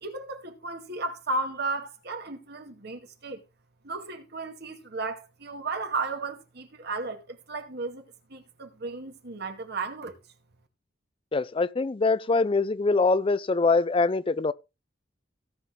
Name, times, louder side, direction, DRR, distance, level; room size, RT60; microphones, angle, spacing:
voice 1, 0.0-3.4 3.8-8.0 8.3-10.2, right 3 dB, 60° right, 2.2 m, -34 dB
voice 2, 11.3-14.5, left 3 dB, 30° left, 0.5 m, -23 dB
17.5 x 6.2 x 3.7 m
head